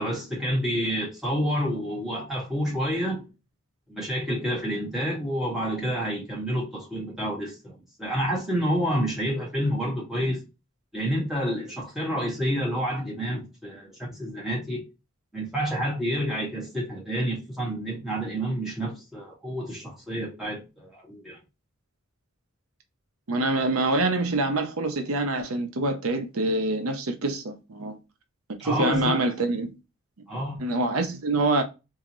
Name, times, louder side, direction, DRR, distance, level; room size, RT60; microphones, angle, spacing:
voice 1, 0.0-3.3 3.9-10.4 10.9-14.8 15.3-21.4 28.6-29.2 30.3-30.6, equal, ahead, 1.7 m, -29 dB
voice 2, 23.3-28.0 28.6-29.7 30.6-31.6, right 2 dB, 85° right, 0.7 m, -25 dB
3.7 x 2.8 x 3.0 m
head